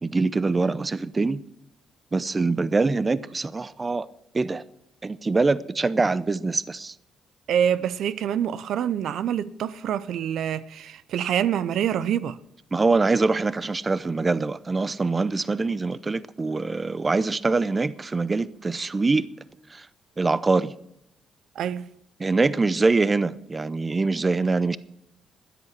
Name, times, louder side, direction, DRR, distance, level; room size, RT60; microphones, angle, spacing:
voice 1, 0.0-1.4 2.1-4.1 4.3-4.6 5.0-6.9 12.7-19.3 19.7-19.9 20.2-20.7 22.2-24.8, right 3 dB, 25° right, 0.6 m, -24 dB
voice 2, 7.5-12.4 21.6-21.9, right 9 dB, 75° right, 0.5 m, -26 dB
13.5 x 9.9 x 6.0 m
cardioid pair, 90°, 0 cm